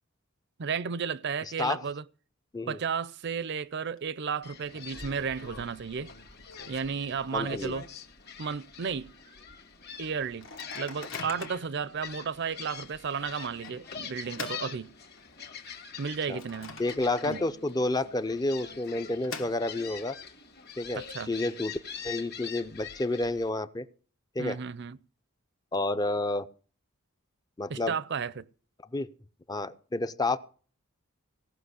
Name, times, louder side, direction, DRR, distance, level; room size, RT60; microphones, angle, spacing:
voice 1, 0.6-2.0 2.7-6.1 6.7-7.9 8.4-9.1 10.0-10.5 10.7-14.9 16.0-16.8 17.2-17.4 20.9-21.3 24.4-25.0 27.7-28.5, right 6 dB, 50° right, 0.5 m, -33 dB
Microwave oven, 3.5-4.0 4.3-4.4 4.7-7.8 8.2-8.3 8.6-8.9 9.4-9.5 10.2-11.8 12.4-12.5 13.6-15.5 15.9-17.4 17.7-17.8 18.7-20.1, left 4 dB, 65° left, 1.5 m, -45 dB
Gull seagull, 4.4-23.5, left 7 dB, 50° left, 1.8 m, -44 dB
voice 2, 7.3-7.7 16.3-16.4 16.8-20.2 20.8-21.7 22.0-23.9 24.4-24.6 25.7-26.5 27.6-27.9 28.9-29.1 29.5-30.4, left 2 dB, 20° left, 0.5 m, -30 dB
17.0 x 6.0 x 8.1 m
head